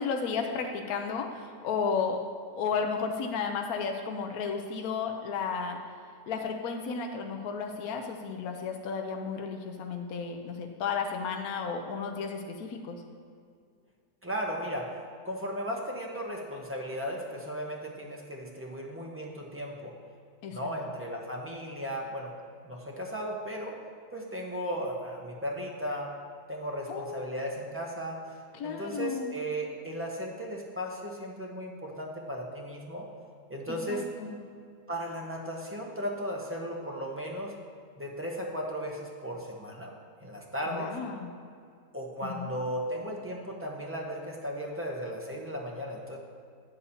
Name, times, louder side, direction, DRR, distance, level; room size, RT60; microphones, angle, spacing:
voice 1, 0.0-2.2 2.5-5.8 6.3-13.0 20.4-20.7 26.9-27.6 28.5-29.3 33.7-34.4 40.7-41.3 42.2-42.5, left 5 dB, 65° left, 3 dB, 1.0 m, -33 dB
voice 2, 14.2-14.9 15.2-19.9 20.5-22.3 22.6-23.8 24.1-26.1 26.5-33.1 33.5-34.1 34.9-37.6 38.0-39.9 40.2-40.9 41.9-46.2, equal, 15° right, -2 dB, 0.4 m, -36 dB
9.5 x 4.1 x 7.0 m, 2.3 s
omnidirectional pair, 2.0 m